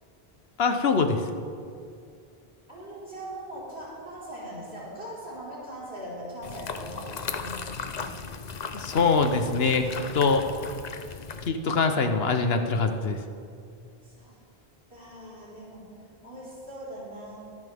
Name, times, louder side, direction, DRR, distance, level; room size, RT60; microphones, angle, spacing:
voice 1, 0.6-1.2 8.7-9.9 10.1-10.5 11.5-13.2, left 4 dB, 75° left, 6 dB, 1.2 m, -23 dB
voice 2, 2.7-8.1 14.0-14.3 14.9-15.8 16.2-17.4, right 1 dB, 85° right, -8 dB, 4.9 m, -40 dB
sound 1, 6.4-11.5, left 5 dB, 45° left, 0.7 m, -37 dB
25.0 x 10.0 x 3.6 m, 2.4 s
omnidirectional pair, 1.0 m